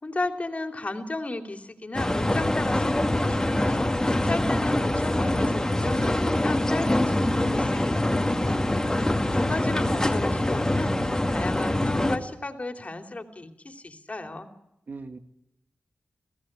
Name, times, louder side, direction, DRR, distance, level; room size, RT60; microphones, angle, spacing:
voice 1, 0.0-8.7 8.9-14.5, left 2 dB, 40° left, 6 dB, 2.9 m, -34 dB
sound 1, 1.9-12.2, left 1 dB, 15° left, 2.2 m, -24 dB
voice 2, 14.9-15.2, right 4 dB, 65° right, 8 dB, 2.0 m, -43 dB
25.0 x 16.0 x 8.8 m, 0.86 s
cardioid pair, 40°, 3 cm